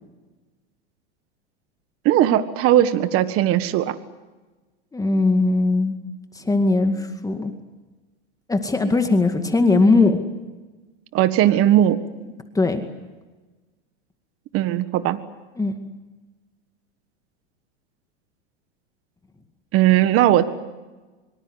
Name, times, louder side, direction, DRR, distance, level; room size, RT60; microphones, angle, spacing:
voice 1, 2.0-3.9 11.1-12.0 14.5-15.2 19.7-20.4, right 12 dB, 40° right, 12 dB, 1.6 m, -18 dB
voice 2, 4.9-5.9 6.3-7.5 8.5-10.2 12.5-12.8 15.6-15.8, left 3 dB, 10° left, 6 dB, 2.1 m, -19 dB
25.0 x 24.5 x 8.2 m, 1.2 s
supercardioid pair, 125°, 34 cm